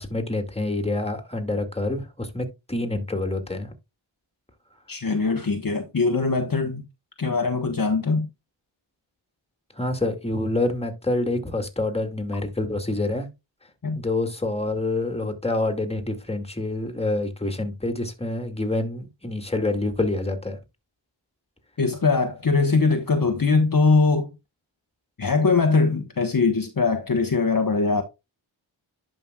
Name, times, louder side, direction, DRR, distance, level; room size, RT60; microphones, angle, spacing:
voice 1, 0.0-3.7 9.8-13.3 13.9-20.6, left 2 dB, 10° left, 2.2 m, -27 dB
voice 2, 4.9-6.8 7.2-8.3 13.8-14.0 21.8-24.3 25.2-28.0, left 4 dB, 45° left, 1.2 m, -21 dB
11.0 x 5.4 x 2.3 m
cardioid pair, 50°, 48 cm